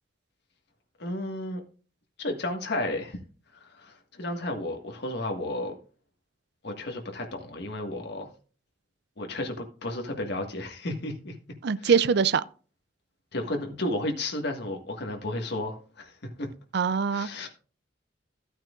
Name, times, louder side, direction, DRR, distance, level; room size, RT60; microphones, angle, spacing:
voice 1, 1.0-1.6 2.2-3.2 3.5-5.7 6.6-8.3 9.2-11.3 11.8-12.0 13.3-16.5 17.1-17.5, left 1 dB, 65° left, 1.7 m, -33 dB
voice 2, 11.6-12.4 16.7-17.3, right 6 dB, 60° right, 0.5 m, -23 dB
14.0 x 9.0 x 2.4 m
head